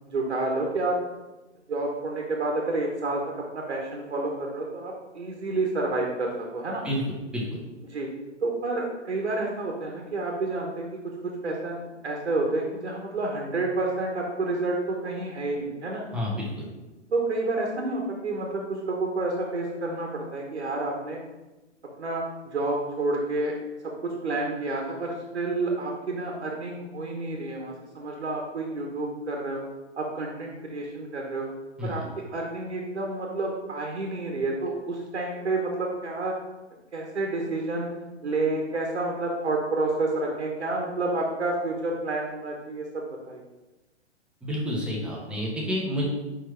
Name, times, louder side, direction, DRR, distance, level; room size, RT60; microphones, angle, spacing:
voice 1, 0.0-1.0 1.7-3.2 3.5-6.8 7.8-8.1 8.4-16.0 17.1-21.2 22.0-23.6 23.8-29.6 30.0-31.5 31.8-32.0 32.3-36.3 36.9-37.9 38.2-43.4, right 2 dB, 65° right, 0 dB, 1.2 m, -29 dB
voice 2, 16.1-16.7 31.8-32.1 44.4-46.1, equal, 5° right, -4 dB, 0.8 m, -29 dB
5.0 x 4.5 x 4.4 m, 1.1 s
figure-of-eight pair, 120°, 35 cm